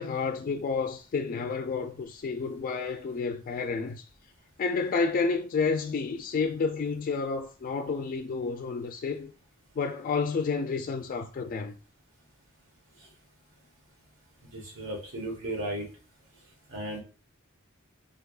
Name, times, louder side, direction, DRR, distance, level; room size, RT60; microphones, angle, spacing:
voice 1, 0.0-4.0 4.6-9.3 9.8-11.7, left 4 dB, 45° left, 0.3 m, -30 dB
voice 2, 14.5-15.9 16.7-17.0, right 1 dB, 80° right, 1.4 m, -35 dB
4.0 x 3.4 x 2.4 m
head